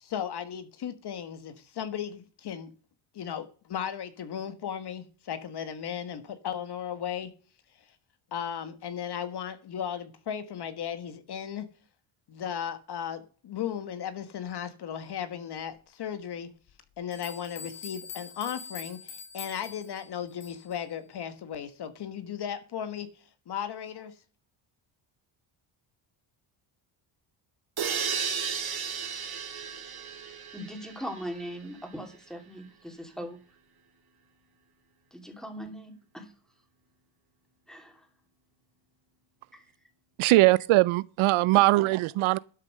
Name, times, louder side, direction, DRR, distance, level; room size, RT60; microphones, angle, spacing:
voice 1, 0.0-2.7 3.1-7.3 8.3-11.7 12.3-16.5 17.0-23.1 23.5-24.1, left 8 dB, 50° left, 1.4 m, -36 dB
sound 1, 16.7-16.8 17.1-20.8, left 6 dB, 80° left, 3.5 m, -44 dB
sound 2, 27.8-31.5, right 6 dB, 50° right, 2.8 m, -34 dB
voice 2, 30.5-33.4 35.1-36.3 37.7-38.1 39.5-39.7, equal, ahead, 2.8 m, -40 dB
voice 3, 40.2-42.4, right 18 dB, 75° right, 0.6 m, -21 dB
12.0 x 6.6 x 6.5 m
cardioid pair, 130°, 50 cm